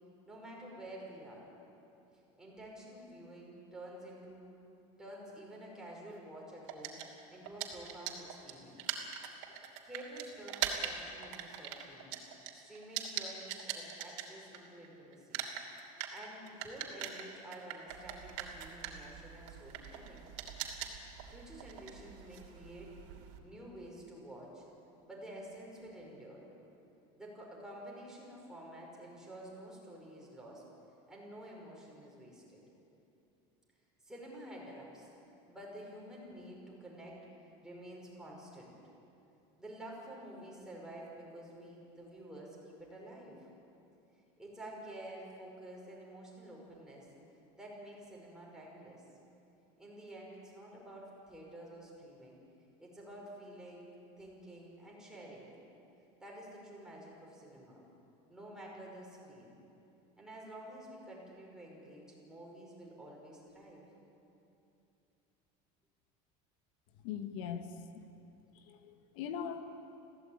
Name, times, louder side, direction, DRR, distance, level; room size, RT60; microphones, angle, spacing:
voice 1, 0.3-1.5 2.4-4.5 5.0-7.0 7.3-9.1 9.5-9.6 9.8-12.1 12.5-15.5 16.1-20.3 21.3-23.0 23.4-24.7 25.0-26.5 27.2-30.6 31.1-32.6 34.0-35.1 35.5-37.2 37.6-38.8 39.6-43.5 44.4-47.1 47.6-49.0 49.8-52.4 52.8-55.5 56.2-57.8 58.3-59.6 60.2-63.9, right 1 dB, 5° right, -4 dB, 5.4 m, -50 dB
sound 1, 6.7-14.9 15.1-23.4, right 10 dB, 75° right, 2.7 m, -42 dB
voice 2, 67.0-67.7 68.5-69.6, left 8 dB, 75° left, 7 dB, 1.7 m, -40 dB
21.5 x 16.5 x 8.9 m, 2.8 s
cardioid pair, 160°, 17 cm